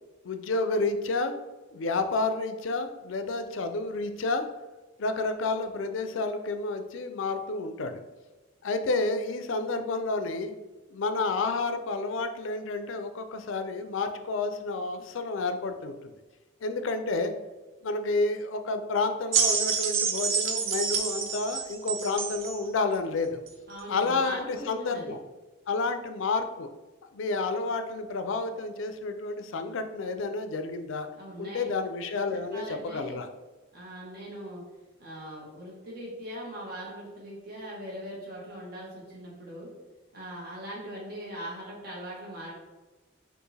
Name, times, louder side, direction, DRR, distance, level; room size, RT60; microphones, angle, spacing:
voice 1, 0.2-1.3 1.7-4.5 5.0-8.0 8.6-10.5 10.9-16.1 16.6-17.3 17.8-23.4 23.9-25.2 25.7-26.7 27.1-31.1 31.4-33.3, left 3 dB, 75° left, 8 dB, 0.4 m, -30 dB
sound 1, 19.3-22.6 23.5-23.6, right 6 dB, 80° right, 0.5 m, -28 dB
voice 2, 23.7-25.1 31.2-31.7 32.3-33.2 33.7-34.6 35.0-39.7 40.1-42.5, equal, 50° right, -4 dB, 1.3 m, -40 dB
4.4 x 2.6 x 3.2 m, 1.1 s
head